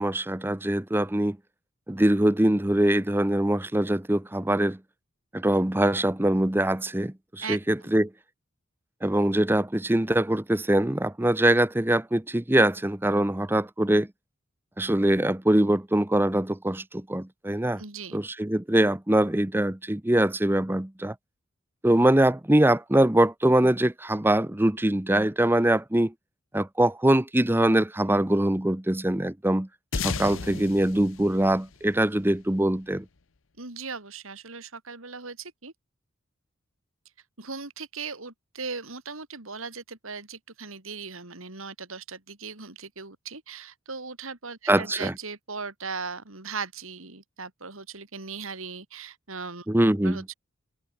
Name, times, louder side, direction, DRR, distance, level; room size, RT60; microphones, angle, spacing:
voice 1, 0.0-1.4 1.9-4.8 5.3-8.1 9.0-14.1 14.8-17.8 18.1-21.1 21.8-26.1 26.5-29.7 30.0-33.0 44.7-45.1 49.7-50.2, right 1 dB, 10° right, 0.7 m, -23 dB
voice 2, 7.4-7.9 17.8-18.2 33.6-35.7 37.4-49.7 50.0-50.3, right 5 dB, 75° right, 3.3 m, -38 dB
sound 1, 29.9-32.7, left 5 dB, 65° left, 0.9 m, -34 dB
head